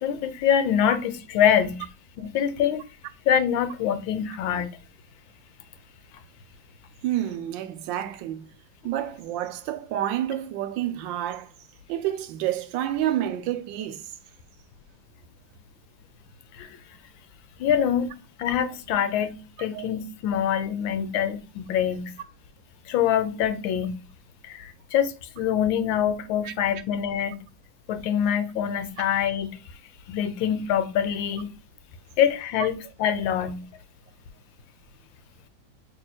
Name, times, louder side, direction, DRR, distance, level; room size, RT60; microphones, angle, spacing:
voice 1, 0.0-1.8 2.2-2.8 3.3-4.7 16.5-16.8 17.6-18.1 18.4-22.1 22.9-24.0 24.4-27.4 27.9-29.6 30.1-31.5 32.2-33.6, left 9 dB, 80° left, 1.4 m, -25 dB
voice 2, 7.0-8.5 8.8-11.5 11.9-14.1 19.7-19.9 26.4-26.5, right 12 dB, 80° right, 1.3 m, -29 dB
6.3 x 3.3 x 2.2 m
omnidirectional pair, 2.1 m